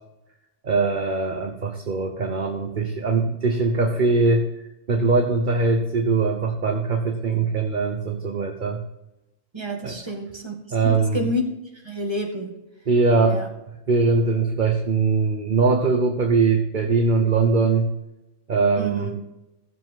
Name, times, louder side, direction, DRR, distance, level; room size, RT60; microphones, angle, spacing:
voice 1, 0.6-4.5 4.9-8.8 9.8-10.0 10.7-11.3 12.9-13.4 13.9-17.9 18.5-19.1, right 4 dB, 40° right, 3 dB, 1.1 m, -21 dB
voice 2, 9.5-10.6 10.8-11.5 11.8-12.5 13.3-13.5 18.8-19.2, equal, 20° right, 1 dB, 2.0 m, -28 dB
15.5 x 7.5 x 3.8 m, 0.94 s
omnidirectional pair, 1.3 m